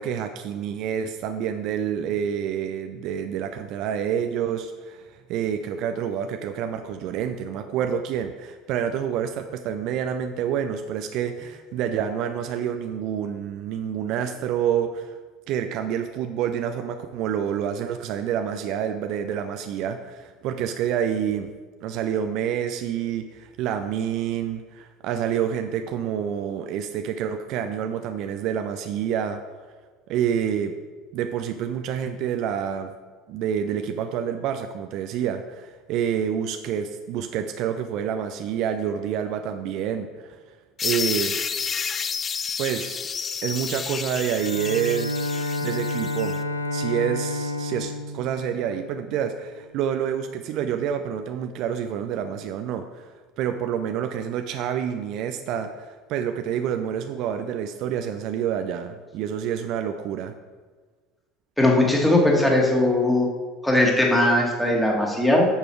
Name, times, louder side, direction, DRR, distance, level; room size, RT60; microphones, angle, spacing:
voice 1, 0.0-15.2 15.5-21.5 21.8-29.4 30.1-30.8 31.1-32.9 33.3-40.4 40.8-41.4 42.6-43.0 43.4-45.1 45.6-46.4 46.7-60.3, right 8 dB, 50° right, 7 dB, 0.5 m, -28 dB
sound 1, 40.8-46.4, left 6 dB, 30° left, 0.5 m, -30 dB
Bowed string instrument, 44.4-49.5, left 2 dB, 90° left, 0.4 m, -30 dB
voice 2, 61.6-63.3 63.6-65.5, left 1 dB, 5° left, -1 dB, 2.0 m, -19 dB
8.7 x 6.8 x 4.6 m, 1.4 s
figure-of-eight pair, 70°, 0 cm